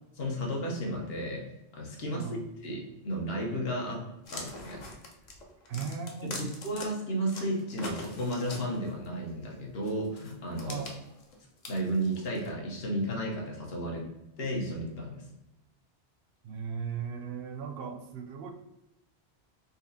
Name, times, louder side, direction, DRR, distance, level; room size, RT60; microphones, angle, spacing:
voice 1, 0.2-1.4 1.7-2.3 2.6-4.0 4.3-4.9 5.7-5.9 6.2-10.8 11.7-14.0 14.4-15.3, right 1 dB, 65° left, -1 dB, 1.1 m, -33 dB
voice 2, 2.1-2.5 5.7-6.5 10.7-11.0 16.4-18.5, right 7 dB, 65° right, 5 dB, 0.7 m, -37 dB
sound 1, 4.2-6.9 7.3-9.1 9.9-12.5, left 2 dB, 50° left, 0.6 m, -43 dB
4.1 x 2.7 x 2.7 m, 0.91 s
omnidirectional pair, 1.1 m